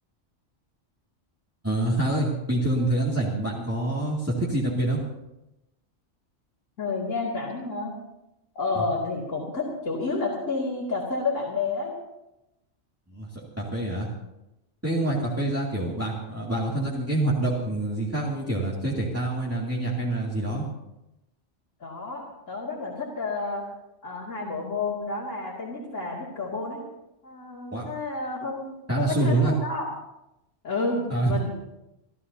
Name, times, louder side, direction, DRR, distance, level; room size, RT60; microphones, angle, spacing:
voice 1, 1.6-5.0 13.1-14.1 14.8-20.6 27.7-27.9 28.9-29.6 31.1-31.4, right 2 dB, 10° right, -6 dB, 2.5 m, -26 dB
voice 2, 6.8-7.9 8.5-11.9 15.0-15.3 21.8-23.6 24.0-26.8 27.2-29.9 30.6-31.5, left 3 dB, 85° left, -5 dB, 3.0 m, -30 dB
29.0 x 13.5 x 2.8 m, 0.92 s
omnidirectional pair, 1.3 m